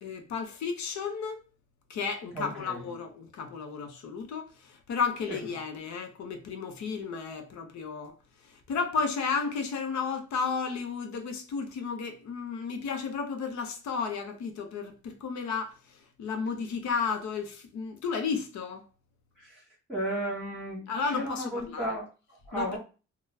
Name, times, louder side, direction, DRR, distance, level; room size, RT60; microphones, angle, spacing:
voice 1, 0.0-1.4 1.9-8.1 8.5-18.9 20.9-21.9 22.5-22.8, left 5 dB, 70° left, 0.8 m, -33 dB
voice 2, 2.3-2.9 5.3-5.4 19.4-19.6 19.9-22.8, right 1 dB, ahead, 1.6 m, -34 dB
3.6 x 2.2 x 2.7 m
cardioid pair, 90°, 30 cm